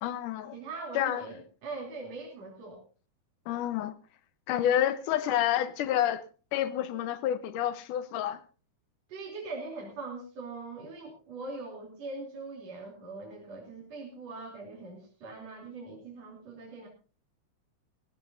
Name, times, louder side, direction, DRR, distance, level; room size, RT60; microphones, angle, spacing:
voice 1, 0.0-0.6 1.0-1.2 3.5-4.0 4.5-6.2 6.5-8.4, left 11 dB, 85° left, 2.5 m, -29 dB
voice 2, 0.5-2.8 9.1-16.9, right 3 dB, 55° right, 4.3 m, -41 dB
19.0 x 16.5 x 2.7 m
omnidirectional pair, 3.6 m